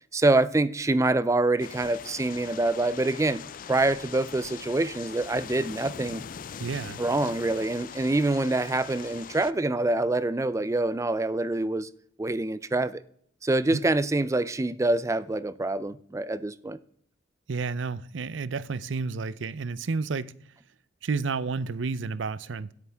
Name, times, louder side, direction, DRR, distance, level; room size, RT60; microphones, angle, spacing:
voice 1, 0.1-3.4 3.7-6.2 7.0-11.9 12.2-13.0 13.4-16.8, right 2 dB, 15° right, 0.4 m, -25 dB
sound 1, 1.6-9.5, left 7 dB, 50° left, 0.4 m, -42 dB
voice 2, 6.6-7.0 13.7-13.8 17.5-20.3 21.0-22.7, right 4 dB, 85° right, 0.6 m, -31 dB
17.0 x 8.2 x 3.5 m
head